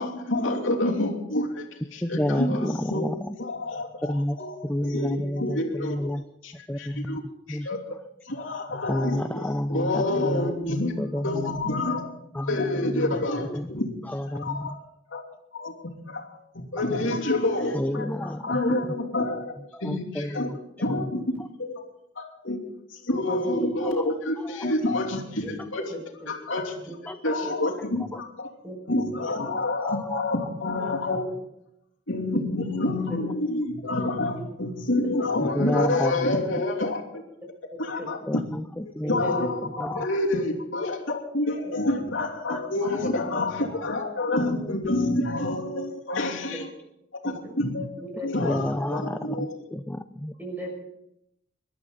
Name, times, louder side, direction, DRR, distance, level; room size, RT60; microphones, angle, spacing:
voice 1, 0.0-1.6 1.9-3.1 3.4-4.5 4.8-6.1 6.4-7.2 7.5-7.8 8.2-11.0 11.2-12.1 12.5-13.9 14.3-14.8 15.1-15.2 15.5-15.7 16.1-19.5 19.8-20.5 20.8-21.3 21.6-21.9 22.2-22.6 22.9-25.9 26.3-26.8 27.2-28.5 28.9-31.3 32.1-37.2 37.8-38.4 39.1-46.7 47.2-47.9 48.2-49.6, left 2 dB, 80° left, -1 dB, 2.9 m, -28 dB
voice 2, 2.0-3.5 4.0-4.4 4.6-6.2 6.7-7.2 7.5-7.7 8.9-11.8 12.3-14.8 17.7-18.6 19.7-21.1 21.4-21.5 23.7-24.6 27.1-27.2 28.1-28.2 29.5-30.2 35.4-36.6 38.3-40.1 42.5-42.6 48.1-50.3, left 1 dB, 10° left, 8 dB, 0.5 m, -31 dB
voice 3, 23.2-23.7 25.4-25.5 25.9-26.3 26.9-27.0 27.4-27.7 28.6-28.7 29.3-29.4 33.1-33.2 38.0-38.1 39.0-39.5 46.5-46.6 47.2-47.5 48.0-48.7 50.4-50.7, right 1 dB, 10° right, 0 dB, 6.1 m, -36 dB
24.5 x 12.0 x 4.0 m, 0.81 s
head